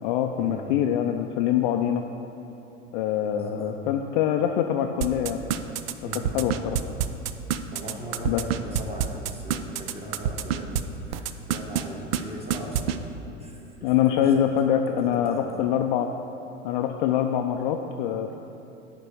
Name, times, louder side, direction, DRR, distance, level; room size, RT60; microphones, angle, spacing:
voice 1, 0.0-2.0 2.9-5.4 6.3-6.8 8.3-8.4 13.8-16.1 16.6-18.4, left 10 dB, 45° left, 5 dB, 0.4 m, -24 dB
voice 2, 3.3-3.8 6.0-6.2 7.7-14.4 15.0-15.6, right 1 dB, 15° right, -1 dB, 1.4 m, -39 dB
sound 1, 5.0-10.8 11.1-11.8 12.1-12.2 12.5-13.0, right 10 dB, 55° right, 0.5 m, -26 dB
9.6 x 3.7 x 6.8 m, 2.9 s
figure-of-eight pair, 80°, 37 cm